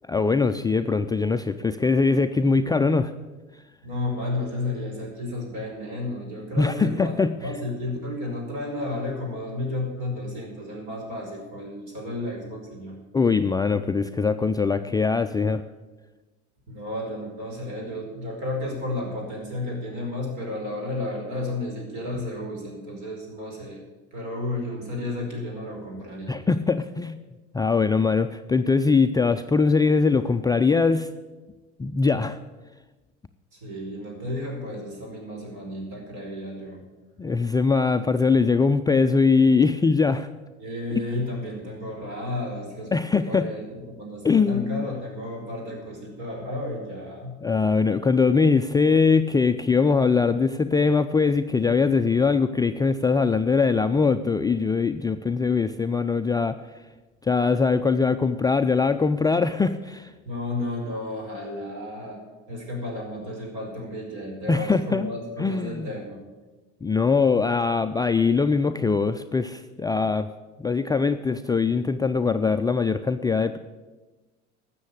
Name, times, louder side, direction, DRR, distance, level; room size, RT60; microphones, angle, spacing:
voice 1, 0.1-3.1 6.6-7.3 13.1-15.6 26.3-27.2 27.5-31.1 31.8-32.4 37.2-40.3 42.9-43.5 44.2-44.9 47.4-56.6 57.2-60.1 64.5-65.1 65.4-65.9 66.8-70.3 70.6-73.6, left 4 dB, 10° left, 8 dB, 0.4 m, -22 dB
voice 2, 3.8-12.9 16.7-23.8 24.1-26.4 33.5-36.8 40.6-42.9 43.3-47.3 60.2-66.2, left 2 dB, 55° right, 1 dB, 5.0 m, -32 dB
12.5 x 7.7 x 8.4 m, 1.2 s
hypercardioid pair, 75°, 35 cm